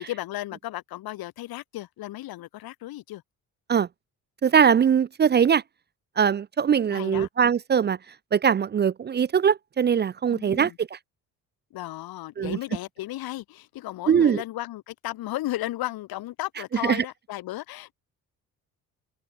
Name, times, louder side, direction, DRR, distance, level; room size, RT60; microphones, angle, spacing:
voice 1, 0.0-3.2 6.9-7.3 10.3-10.8 11.7-17.9, left 16 dB, 80° left, 2.1 m, -34 dB
voice 2, 4.4-5.6 6.2-8.0 8.3-11.0 12.4-12.6 14.1-14.4 16.8-17.0, right 7 dB, 30° right, 0.4 m, -21 dB
open air
cardioid pair, 90°, 36 cm